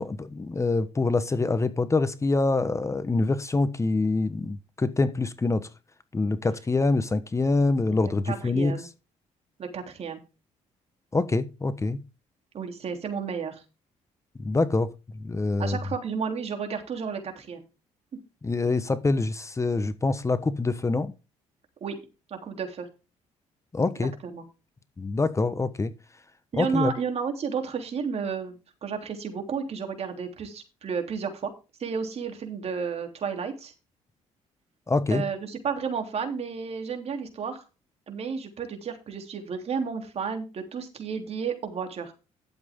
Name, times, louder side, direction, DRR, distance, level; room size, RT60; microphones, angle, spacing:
voice 1, 0.0-5.7 6.1-8.7 11.1-12.0 14.4-15.8 18.4-21.1 23.7-24.1 25.0-25.9 26.6-26.9 34.9-35.2, left 3 dB, 20° left, 1.1 m, -25 dB
voice 2, 7.9-8.9 9.6-10.2 12.5-13.6 15.6-17.6 21.8-22.0 22.3-22.9 24.2-24.4 26.5-31.5 31.8-33.7 35.1-37.6 38.1-42.1, right 6 dB, 50° right, 3.3 m, -32 dB
12.0 x 7.7 x 3.7 m
cardioid pair, 85°, 13 cm